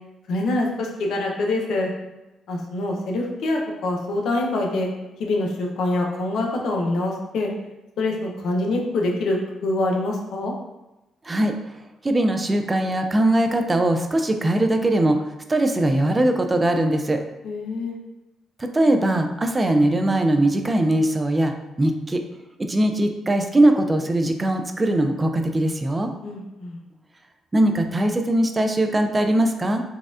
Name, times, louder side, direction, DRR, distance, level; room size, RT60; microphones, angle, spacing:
voice 1, 0.3-1.9 2.5-4.9 5.2-7.5 8.0-10.5 17.4-18.0 26.2-26.8, left 2 dB, 75° left, 0 dB, 0.6 m, -25 dB
voice 2, 12.0-17.2 18.6-22.2 22.6-26.1 27.5-29.8, right 1 dB, 20° right, 6 dB, 0.3 m, -21 dB
4.1 x 2.3 x 2.4 m, 0.99 s
cardioid pair, 90°, 0 cm